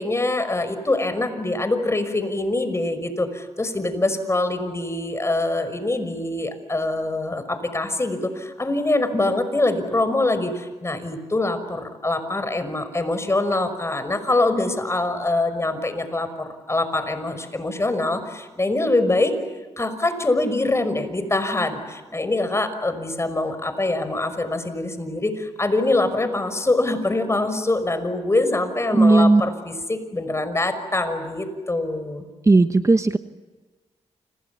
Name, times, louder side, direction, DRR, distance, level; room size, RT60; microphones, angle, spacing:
voice 1, 0.0-19.3 19.8-32.2, left 2 dB, 25° left, 10 dB, 5.7 m, -24 dB
voice 2, 29.0-29.4 32.5-33.2, right 2 dB, 25° right, 9 dB, 1.2 m, -15 dB
30.0 x 27.0 x 7.2 m, 1.3 s
cardioid pair, 70°, 11 cm